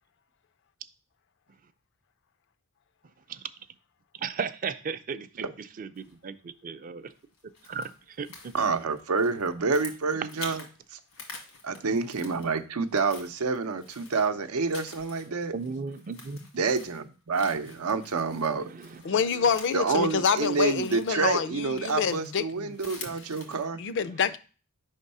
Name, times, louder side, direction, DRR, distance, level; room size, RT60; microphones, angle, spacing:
voice 1, 4.2-5.5 5.8-7.1 7.7-7.9 8.2-8.5 15.5-16.5 18.7-19.2 23.4-23.6, right 5 dB, 40° right, 0.4 m, -35 dB
sound 1, 6.0-6.3 7.1-10.7 11.0-12.6 12.9-23.6, left 4 dB, 90° left, 1.9 m, -47 dB
voice 2, 8.5-10.6 10.9-11.0 11.6-15.5 16.6-18.7 19.7-23.8, right 4 dB, 85° right, 0.6 m, -28 dB
voice 3, 19.0-22.7 23.8-24.4, left 6 dB, 55° left, 0.4 m, -27 dB
5.4 x 3.7 x 5.4 m
head